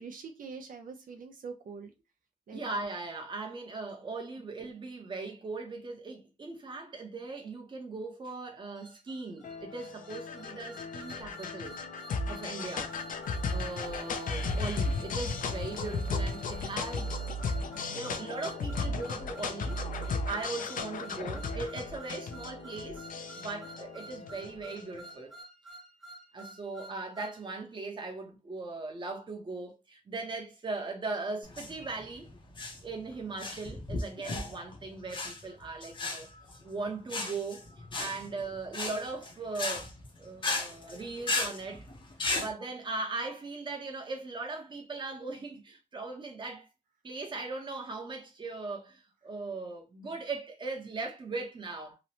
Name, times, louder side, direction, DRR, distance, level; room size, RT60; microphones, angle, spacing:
voice 1, 0.0-1.9 2.5-2.6, right 5 dB, 85° right, 0.5 m, -44 dB
voice 2, 2.5-11.8 12.3-12.9 13.5-17.2 17.9-23.1 23.4-25.3 26.3-32.3 32.8-36.3 36.6-37.7 38.0-39.9 40.2-41.9 42.4-46.7 47.0-52.0, right 3 dB, 35° right, 0.7 m, -39 dB
sound 1, 8.8-27.4, right 2 dB, ahead, 0.7 m, -50 dB
sound 2, 9.4-25.0, left 3 dB, 80° left, 0.4 m, -35 dB
sound 3, 31.4-42.5, left 3 dB, 35° left, 0.6 m, -36 dB
3.0 x 2.0 x 2.7 m
wide cardioid pair, 160°, 14 cm